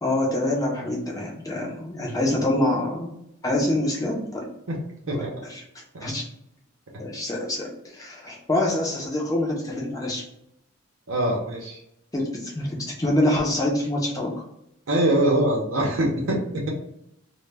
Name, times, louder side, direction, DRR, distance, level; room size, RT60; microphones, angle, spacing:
voice 1, 0.0-3.1 3.4-4.5 5.2-5.6 6.0-6.3 7.0-10.2 12.1-14.4, left 1 dB, 15° left, -1 dB, 0.5 m, -26 dB
voice 2, 11.1-11.8 14.9-16.7, right 1 dB, 70° right, -1 dB, 0.6 m, -23 dB
2.1 x 2.1 x 3.2 m, 0.79 s
head